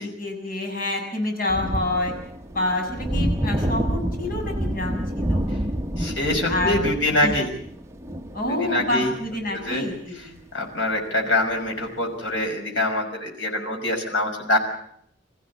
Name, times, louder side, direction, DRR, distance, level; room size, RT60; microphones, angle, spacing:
voice 1, 0.2-2.1 2.5-5.4 6.2-6.8 7.2-7.5 8.3-10.4, left 2 dB, 50° left, 2 dB, 7.0 m, -28 dB
sound 1, 1.5-10.0 11.5-11.6, right 1 dB, 15° right, 0.9 m, -28 dB
voice 2, 6.0-7.5 8.5-9.1 9.5-9.8 10.1-10.3 10.5-14.6, left 1 dB, 90° left, 2 dB, 5.6 m, -24 dB
25.0 x 15.0 x 8.3 m, 0.69 s
head